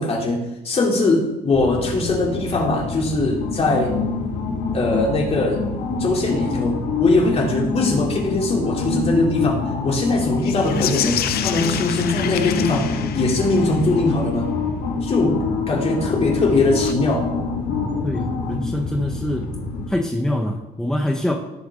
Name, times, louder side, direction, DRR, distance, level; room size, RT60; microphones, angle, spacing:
voice 1, 0.0-4.0 4.7-5.6 6.0-14.5 15.0-15.4 15.7-17.2, left 2 dB, 35° left, -1 dB, 3.3 m, -21 dB
sound 1, 1.5-19.9, left 4 dB, 80° left, 2.2 m, -26 dB
sound 2, 10.4-13.9 16.7-16.9, left 10 dB, 65° left, 0.8 m, -28 dB
voice 2, 18.0-19.5 19.9-21.3, left 1 dB, 5° left, 2 dB, 1.1 m, -24 dB
18.0 x 7.8 x 3.8 m, 0.94 s
cardioid pair, 110°, 17 cm